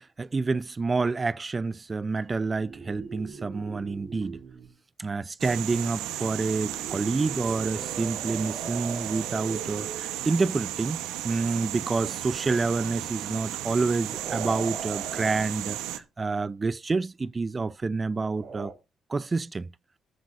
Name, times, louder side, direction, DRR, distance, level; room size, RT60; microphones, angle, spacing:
voice 1, 0.0-4.4 5.0-11.0 11.2-18.7 19.1-19.7, right 4 dB, 30° right, 0.5 m, -28 dB
sound 1, 2.5-4.7 6.4-10.6 13.9-15.5 18.2-18.7, right 5 dB, 60° right, 3.4 m, -40 dB
sound 2, 5.4-16.0, right 13 dB, 85° right, 1.1 m, -34 dB
19.0 x 9.2 x 2.6 m
supercardioid pair, 60°, 0 cm